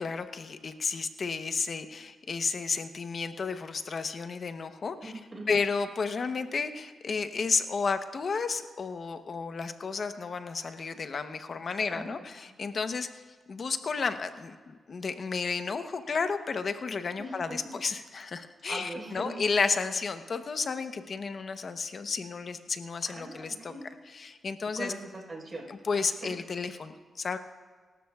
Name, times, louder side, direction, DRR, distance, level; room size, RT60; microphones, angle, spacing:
voice 1, 0.0-5.1 5.5-13.2 13.5-23.7 24.1-24.9 25.7-27.4, left 5 dB, 55° left, 8 dB, 0.9 m, -32 dB
voice 2, 5.0-5.5 11.9-12.1 17.2-17.7 18.6-19.4 23.1-23.9 24.8-25.7 25.9-26.3, right 2 dB, 35° right, 0 dB, 4.5 m, -41 dB
26.0 x 13.0 x 2.4 m, 1.5 s
cardioid pair, 85°, 0 cm